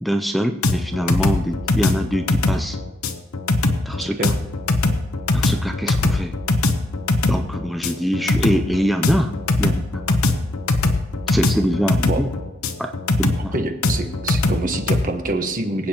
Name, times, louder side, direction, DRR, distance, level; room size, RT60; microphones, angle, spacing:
voice 1, 0.0-2.8 3.9-4.3 5.3-6.3 7.3-9.3 9.6-10.4 11.3-12.3 12.8-12.9 13.2-13.5, equal, ahead, 5 dB, 0.4 m, -24 dB
sound 1, 0.6-15.0, left 2 dB, 80° left, 1.0 m, -21 dB
voice 2, 4.0-4.3 12.0-12.2 13.5-15.9, right 2 dB, 40° right, 5 dB, 1.2 m, -26 dB
24.5 x 8.5 x 2.9 m, 1.1 s
head